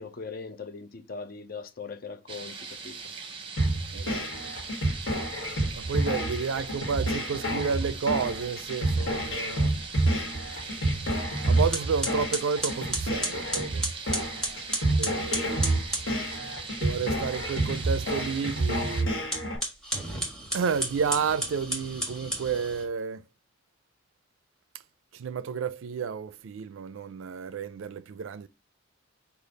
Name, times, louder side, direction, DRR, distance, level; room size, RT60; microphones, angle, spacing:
voice 1, 0.0-2.6 2.8-3.0, left 4 dB, 45° left, 0.5 m, -39 dB
sound 1, 2.3-19.0, right 4 dB, 25° right, 0.7 m, -40 dB
sound 2, 3.6-19.6, right 1 dB, 65° left, 1.4 m, -29 dB
voice 2, 3.9-4.5 5.8-9.7 11.4-13.9 15.0-15.8 16.8-19.2 20.5-23.2 25.1-28.5, right 6 dB, 75° right, 0.3 m, -31 dB
sound 3, 11.7-16.1 19.2-22.9, right 1 dB, 5° left, 1.2 m, -33 dB
5.1 x 2.4 x 3.7 m
head